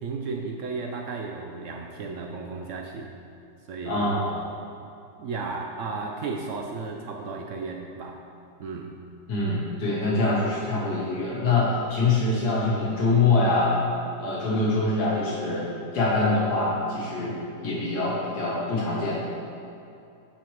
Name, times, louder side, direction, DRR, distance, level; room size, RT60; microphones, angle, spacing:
voice 1, 0.0-3.1 3.7-4.4 5.2-8.2 8.6-8.9, right 4 dB, 70° right, 1 dB, 0.7 m, -34 dB
voice 2, 3.8-4.3 9.3-13.8 14.2-15.7 15.9-17.3 17.6-19.2, left 3 dB, 75° left, -6 dB, 1.7 m, -24 dB
11.5 x 4.3 x 3.1 m, 2.6 s
omnidirectional pair, 1.7 m